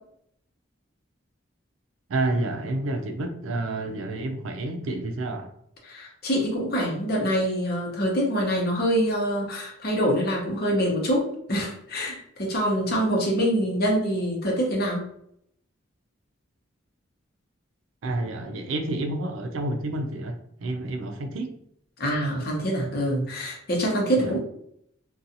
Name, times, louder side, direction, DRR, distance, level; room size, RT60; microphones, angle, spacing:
voice 1, 2.1-5.5 18.0-21.5 24.2-24.4, right 2 dB, 85° right, 6 dB, 0.4 m, -29 dB
voice 2, 5.8-15.0 22.0-24.4, equal, 50° left, -1 dB, 0.8 m, -25 dB
2.6 x 2.3 x 2.6 m, 0.71 s
head